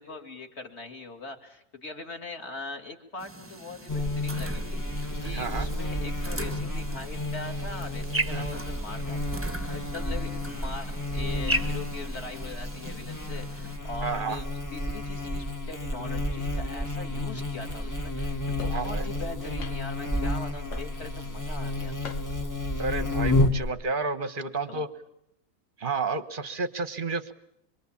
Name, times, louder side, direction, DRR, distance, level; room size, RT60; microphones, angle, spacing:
voice 1, 0.0-9.2 9.7-22.2 24.6-24.9, left 3 dB, 35° left, 5 dB, 2.6 m, -41 dB
sound 1, 3.2-13.8, right 2 dB, 10° right, 1.0 m, -38 dB
Buzz, 3.9-23.7, left 1 dB, 10° left, 1.0 m, -31 dB
voice 2, 5.3-5.7 8.3-8.5 14.0-14.4 18.7-19.1 22.8-24.9 25.8-27.3, right 4 dB, 30° right, 15 dB, 1.1 m, -31 dB
sound 2, 18.6-18.9 19.6-20.0 20.7-21.2 22.0-22.5 23.2-23.5, left 5 dB, 60° left, 2.3 m, -42 dB
25.0 x 24.0 x 8.6 m, 0.75 s
omnidirectional pair, 2.1 m